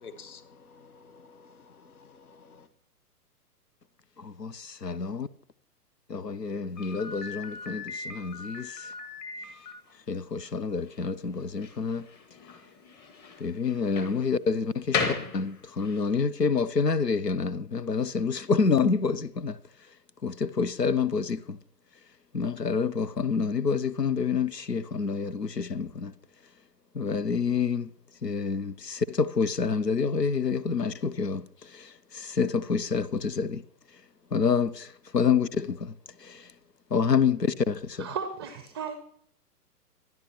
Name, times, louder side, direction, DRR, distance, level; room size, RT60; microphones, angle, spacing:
voice 1, 0.0-2.7, left 5 dB, 65° left, 1.4 m, -50 dB
voice 2, 4.2-5.3 6.1-8.9 10.1-12.1 13.4-19.6 20.2-21.6 22.3-26.1 26.9-27.9 28.2-33.6 34.3-35.9 36.2-36.5 36.9-38.1, left 5 dB, 90° left, 0.8 m, -28 dB
Slam, 6.7-16.1, left 4 dB, 20° left, 1.8 m, -37 dB
voice 3, 38.0-38.9, right 6 dB, 15° right, 0.5 m, -35 dB
24.0 x 10.5 x 2.9 m
figure-of-eight pair, 120°, 47 cm